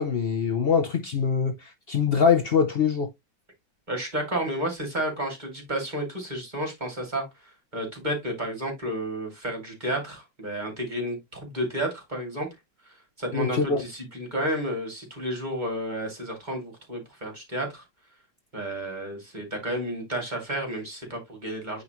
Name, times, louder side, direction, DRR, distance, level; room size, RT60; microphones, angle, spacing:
voice 1, 0.0-3.1 13.3-13.8, left 6 dB, 85° left, 0.5 m, -23 dB
voice 2, 3.9-12.5 13.2-17.8 18.5-21.8, right 1 dB, 20° right, 2.8 m, -31 dB
9.3 x 3.8 x 3.0 m
omnidirectional pair, 2.1 m